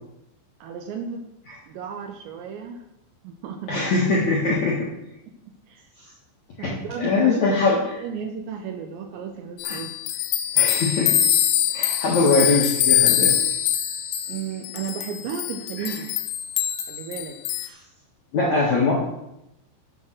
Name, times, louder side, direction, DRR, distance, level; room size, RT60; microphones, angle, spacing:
voice 1, 0.6-1.3 1.7-2.8 3.2-3.9 5.3-5.9 6.6-9.9 14.3-16.1 16.9-17.4 18.4-18.6, right 6 dB, 75° right, 5 dB, 2.7 m, -34 dB
voice 2, 3.7-4.9 6.6-8.0 9.6-9.8 10.6-11.1 11.7-13.4 18.3-18.9, left 3 dB, 65° left, -4 dB, 1.9 m, -22 dB
sound 1, 9.6-17.7, left 11 dB, 85° left, 3.5 m, -23 dB
10.5 x 7.3 x 6.1 m, 0.86 s
omnidirectional pair, 5.8 m